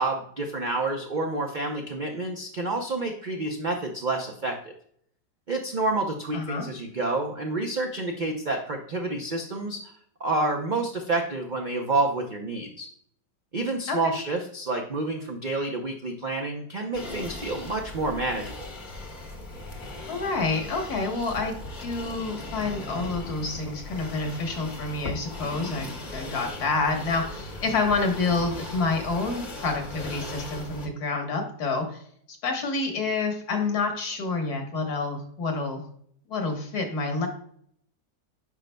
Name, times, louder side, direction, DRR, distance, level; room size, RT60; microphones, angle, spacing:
voice 1, 0.0-4.7 5.5-9.9 10.2-12.9 13.5-18.7, right 2 dB, 55° right, 2 dB, 0.5 m, -29 dB
voice 2, 6.3-6.7 13.9-14.1 20.1-32.0 32.3-35.8 36.3-37.3, left 3 dB, 65° left, 3 dB, 1.7 m, -28 dB
sound 1, 16.9-30.9, left 2 dB, 35° left, 0.9 m, -38 dB
9.5 x 5.2 x 2.2 m, 0.64 s
omnidirectional pair, 1.8 m